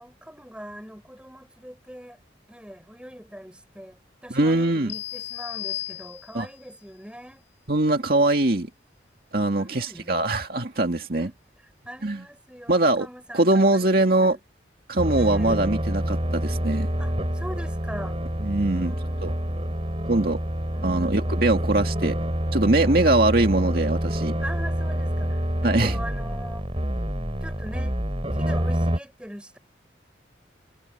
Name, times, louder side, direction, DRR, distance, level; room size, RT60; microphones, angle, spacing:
voice 1, 0.0-2.2 2.5-7.4 9.6-10.2 11.2-11.4 11.8-14.4 15.1-15.8 17.0-18.2 18.7-20.1 20.7-21.7 22.7-23.1 24.4-26.7 27.4-28.0 28.3-29.6, equal, 5° right, 7.2 m, -41 dB
voice 2, 4.3-4.9 6.3-6.5 7.7-8.7 9.3-11.3 12.0-12.2 12.7-13.1 13.3-14.4 14.9-16.9 18.4-18.9 19.2-19.3 20.1-20.4 20.8-22.2 22.5-24.3 25.6-26.0, right 2 dB, 55° right, 2.1 m, -22 dB
sound 1, 4.9-6.6, left 13 dB, 80° left, 7.5 m, -35 dB
sound 2, 15.0-29.0, equal, 30° right, 4.3 m, -27 dB
head